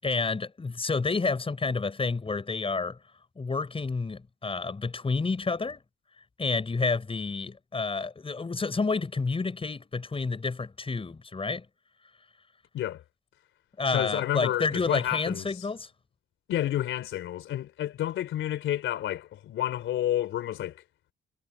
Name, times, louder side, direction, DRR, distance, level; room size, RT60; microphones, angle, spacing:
voice 1, 0.0-3.0 3.4-5.8 6.4-11.6 13.8-15.9, left 4 dB, 30° left, 6.7 m, -29 dB
voice 2, 13.9-15.7 16.5-20.8, left 12 dB, 80° left, 3.5 m, -30 dB
cardioid pair, 90°, 20 cm